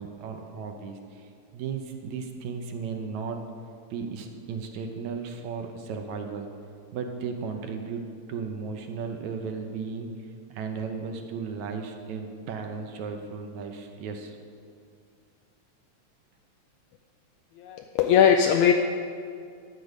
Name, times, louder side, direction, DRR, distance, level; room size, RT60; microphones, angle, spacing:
voice 1, 0.0-3.4 3.9-6.5 6.9-10.1 10.5-14.4, right 5 dB, 75° right, 4 dB, 2.0 m, -35 dB
voice 2, 17.6-18.7, left 8 dB, 80° left, 4 dB, 1.9 m, -20 dB
12.5 x 5.1 x 8.0 m, 2.3 s
omnidirectional pair, 3.5 m